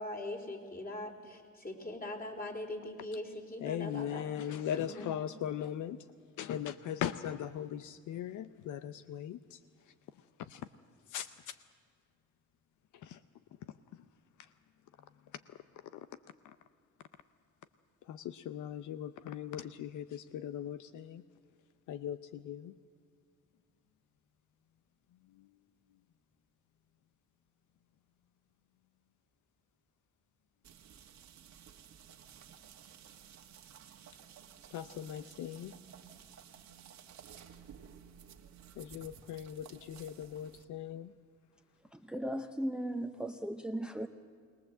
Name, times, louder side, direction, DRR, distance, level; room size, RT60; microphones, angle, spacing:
voice 1, 0.0-5.2, left 1 dB, 30° left, 3 dB, 3.8 m, -42 dB
voice 2, 3.6-6.0 6.4-9.6 10.4-10.6 11.1-11.6 13.0-13.2 15.9-16.1 18.1-21.2 21.9-22.7 25.4-25.5 34.7-35.7 38.8-41.1, left 10 dB, 75° left, 13 dB, 0.7 m, -39 dB
sound 1, 30.6-40.6, right 8 dB, 65° right, 1.6 m, -55 dB
voice 3, 41.9-44.1, right 1 dB, 5° right, 8 dB, 0.8 m, -37 dB
22.0 x 19.0 x 7.8 m, 2.1 s
cardioid pair, 90°, 30 cm